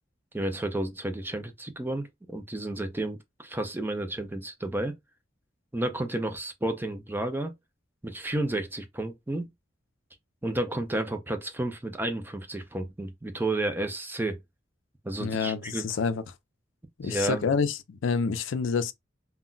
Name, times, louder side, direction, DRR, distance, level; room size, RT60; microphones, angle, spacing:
voice 1, 0.3-4.9 5.7-7.5 8.0-9.5 10.4-14.4 15.0-15.9 17.0-17.5, right 1 dB, 10° right, 0.4 m, -31 dB
voice 2, 15.2-16.2 17.0-18.9, left 5 dB, 75° left, 0.4 m, -28 dB
2.2 x 2.1 x 3.7 m
head